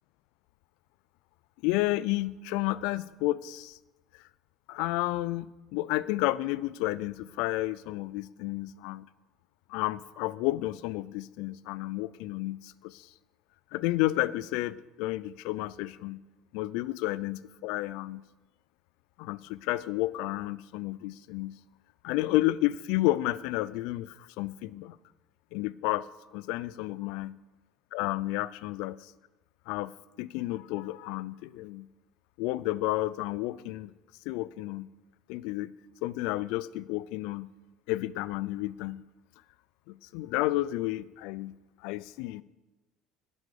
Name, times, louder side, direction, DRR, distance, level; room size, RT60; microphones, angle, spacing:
voice 1, 1.6-3.8 4.7-9.1 9.7-13.1 13.7-16.2 16.5-18.2 19.2-21.6 22.0-25.0 25.5-26.1 26.3-27.3 27.9-28.9 29.7-29.9 30.2-31.9 32.4-33.9 34.3-34.9 35.3-35.7 36.0-37.5 37.9-39.0 39.9-41.6 41.8-42.4, left 17 dB, 70° left, 19 dB, 0.4 m, -31 dB
10.5 x 8.3 x 6.8 m, 1.1 s
hypercardioid pair, 70°, 0 cm